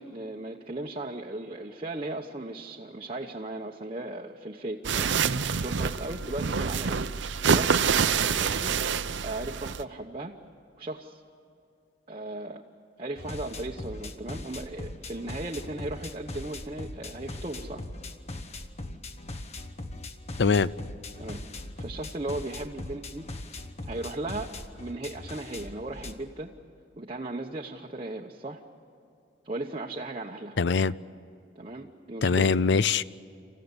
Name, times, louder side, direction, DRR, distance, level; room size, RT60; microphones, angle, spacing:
voice 1, 0.0-5.2 5.6-7.1 7.5-7.9 8.3-8.8 9.2-10.3 10.8-11.2 12.1-12.6 13.0-17.9 21.2-21.4 21.8-23.3 23.8-26.5 27.0-28.6 29.4-30.6 31.5-32.5, right 2 dB, 30° right, 0.9 m, -37 dB
sound 1, 4.8-9.8, right 6 dB, 75° right, 0.7 m, -26 dB
sound 2, 13.2-26.1, left 2 dB, 35° left, 1.0 m, -40 dB
voice 2, 20.4-20.7 30.6-30.9 32.2-33.0, left 5 dB, 65° left, 0.5 m, -22 dB
28.0 x 15.0 x 9.7 m
head